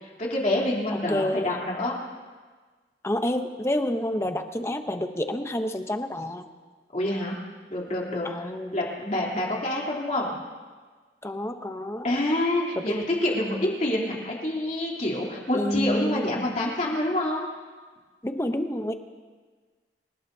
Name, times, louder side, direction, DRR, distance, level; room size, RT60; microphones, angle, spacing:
voice 1, 0.0-1.9 6.9-7.4 7.7-10.3 12.0-17.5, left 1 dB, 40° left, -3 dB, 3.3 m, -27 dB
voice 2, 0.9-1.5 3.0-6.4 8.2-8.8 11.2-12.1 12.8-13.0 15.5-16.4 18.2-18.9, left 1 dB, 15° left, 7 dB, 0.8 m, -29 dB
28.0 x 17.5 x 2.8 m, 1.4 s
head